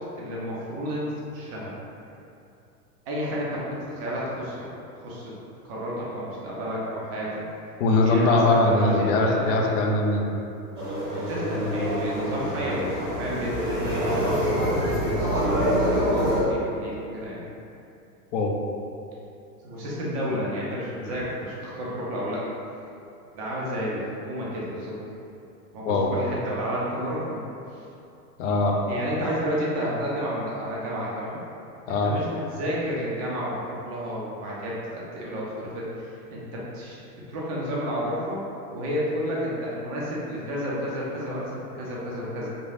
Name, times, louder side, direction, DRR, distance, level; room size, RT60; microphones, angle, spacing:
voice 1, 0.0-1.7 3.1-4.7 5.0-5.3 5.6-7.3 8.0-9.6 11.3-17.4 19.6-22.4 23.3-25.0 25.7-27.4 27.7-27.8 28.9-31.4 32.0-37.0 37.3-38.5 38.7-42.5, equal, 25° right, -6 dB, 0.3 m, -31 dB
voice 2, 7.8-10.3 18.3-18.5 25.8-26.1 28.4-28.8 31.9-32.1, left 2 dB, 55° left, 1 dB, 0.5 m, -21 dB
sound 1, 10.8-16.4, equal, 10° right, 0.8 m, -25 dB
3.0 x 2.1 x 2.4 m, 2.7 s
hypercardioid pair, 115°, 47 cm